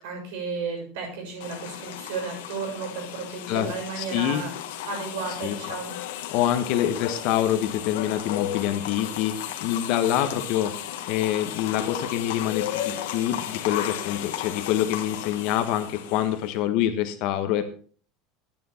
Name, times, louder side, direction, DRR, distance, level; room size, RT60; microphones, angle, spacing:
voice 1, 0.0-4.5 4.9-5.9, right 5 dB, 70° right, 2 dB, 6.9 m, -33 dB
sound 1, 1.4-16.6, left 11 dB, 85° left, 1.6 m, -34 dB
voice 2, 3.5-4.5 5.4-5.6 6.1-10.7 11.1-17.6, left 11 dB, 45° left, 8 dB, 1.3 m, -26 dB
12.0 x 9.7 x 4.4 m, 0.43 s
cardioid pair, 180°, 0 cm